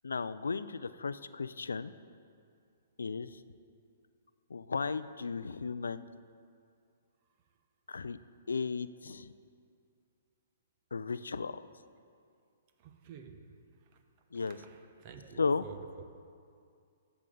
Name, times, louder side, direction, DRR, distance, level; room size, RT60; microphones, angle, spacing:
voice 1, 0.0-1.9 3.0-3.4 4.5-6.1 7.9-8.2 8.5-9.3 10.9-11.6 14.3-14.6 15.4-15.6, left 4 dB, 85° left, 14 dB, 0.3 m, -35 dB
voice 2, 12.8-13.4 14.4-16.0, right 7 dB, 45° right, 6 dB, 0.9 m, -50 dB
13.5 x 7.0 x 3.8 m, 2.4 s
hypercardioid pair, 130°, 0 cm